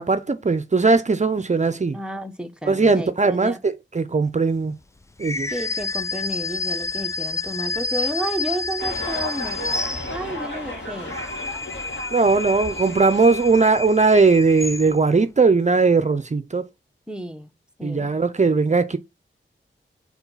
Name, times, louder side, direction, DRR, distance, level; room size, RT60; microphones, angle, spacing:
voice 1, 0.0-2.0 2.6-4.7 5.2-5.5 12.1-16.6 17.8-19.0, right 4 dB, 35° right, 0.6 m, -19 dB
voice 2, 1.9-3.6 5.5-9.6 10.1-11.2 17.1-17.5 17.8-18.1, right 1 dB, 5° right, 0.9 m, -31 dB
sound 1, 5.2-10.5 10.9-15.2, left 4 dB, 15° left, 0.4 m, -29 dB
sound 2, 8.8-14.0, left 1 dB, 60° left, 2.4 m, -34 dB
4.8 x 4.0 x 5.6 m
cardioid pair, 60°, 21 cm